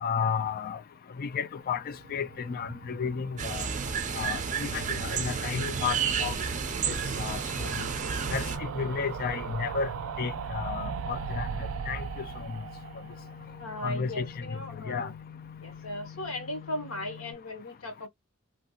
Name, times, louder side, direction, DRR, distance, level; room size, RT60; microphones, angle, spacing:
voice 1, 0.0-0.8 1.2-3.7 4.1-6.4 6.9-7.8 8.3-9.9 10.2-11.5 11.9-12.5 13.8-14.3 14.9-15.1, left 6 dB, 45° left, 0.3 m, -33 dB
sound 1, 1.3-17.3, left 7 dB, 25° left, 1.3 m, -49 dB
sound 2, 1.8-14.9 15.2-15.3 15.5-15.6 15.8-15.9, right 6 dB, 80° right, 0.4 m, -39 dB
sound 3, 3.4-8.6, right 6 dB, 35° right, 0.6 m, -31 dB
voice 2, 13.6-15.1 15.6-18.1, left 1 dB, 80° left, 1.2 m, -37 dB
3.1 x 2.8 x 2.3 m
head